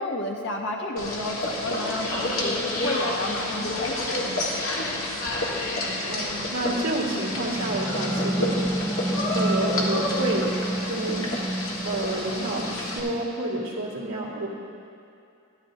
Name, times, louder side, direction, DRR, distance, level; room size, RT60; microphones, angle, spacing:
voice 1, 0.0-4.2, left 1 dB, 55° left, 0 dB, 0.8 m, -31 dB
sound 1, 1.0-13.0, left 2 dB, 75° left, 1.7 m, -29 dB
voice 2, 6.1-9.0 9.3-10.5 10.9-11.3 11.8-14.5, right 2 dB, 80° right, -6 dB, 2.3 m, -29 dB
sound 2, 7.6-13.2, right 1 dB, ahead, 0.5 m, -30 dB
14.0 x 13.0 x 2.7 m, 2.5 s
head